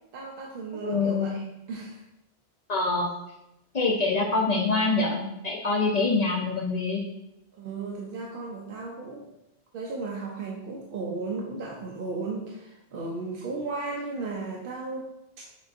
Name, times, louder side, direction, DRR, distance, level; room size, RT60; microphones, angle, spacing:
voice 1, 0.1-1.4 1.7-2.0 7.6-9.3 9.7-15.1, right 3 dB, 60° right, -2 dB, 0.7 m, -35 dB
voice 2, 0.8-1.3 2.7-3.1 3.7-7.0, left 3 dB, 50° left, -2 dB, 0.5 m, -25 dB
6.4 x 2.6 x 2.5 m, 0.89 s
omnidirectional pair, 1.1 m